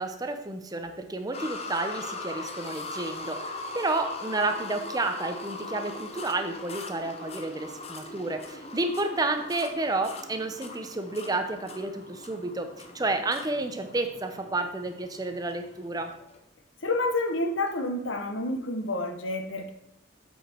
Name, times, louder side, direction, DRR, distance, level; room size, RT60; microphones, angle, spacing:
voice 1, 0.0-16.1, right 2 dB, 20° right, 7 dB, 0.6 m, -31 dB
sound 1, 1.3-16.4 17.1-17.2 17.7-17.8, left 2 dB, 35° left, 0.8 m, -40 dB
voice 2, 16.8-19.7, left 2 dB, 85° left, 7 dB, 1.0 m, -29 dB
8.0 x 4.9 x 4.4 m, 0.79 s
head